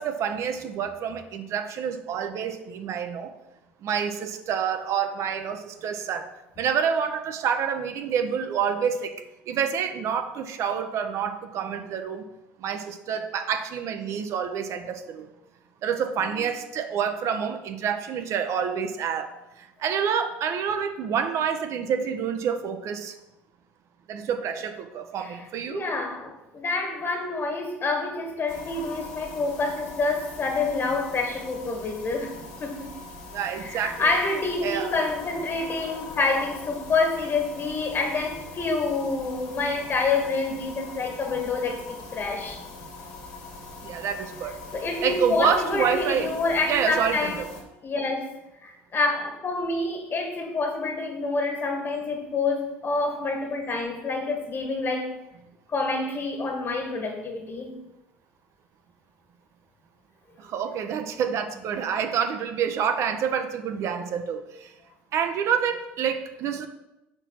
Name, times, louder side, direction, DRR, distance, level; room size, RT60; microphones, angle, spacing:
voice 1, 0.0-3.3 3.8-6.3 6.6-9.2 9.5-12.2 12.6-15.3 15.8-19.3 19.6-23.2 24.1-25.8 33.3-34.1 34.6-34.9 43.8-44.5 45.0-46.3 46.7-47.3 60.4-64.7 65.1-66.7, right 7 dB, 55° right, 7 dB, 0.6 m, -28 dB
voice 2, 25.2-32.9 33.5-42.6 44.7-47.4 47.8-48.3 48.6-55.1 55.7-57.7, left 3 dB, 40° left, 3 dB, 1.8 m, -27 dB
sound 1, 28.5-47.6, left 3 dB, 65° left, 1.5 m, -41 dB
4.5 x 4.4 x 5.8 m, 0.95 s
hypercardioid pair, 70°, 6 cm